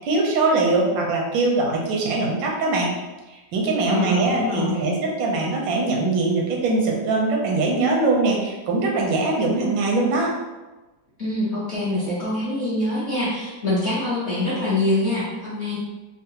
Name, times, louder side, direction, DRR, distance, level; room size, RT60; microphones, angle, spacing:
voice 1, 0.0-3.0 3.3-10.3, right 3 dB, 85° right, -1 dB, 1.4 m, -22 dB
voice 2, 3.8-4.9 11.2-15.8, left 2 dB, 55° left, -10 dB, 0.7 m, -24 dB
3.7 x 2.0 x 2.7 m, 1.1 s
omnidirectional pair, 2.1 m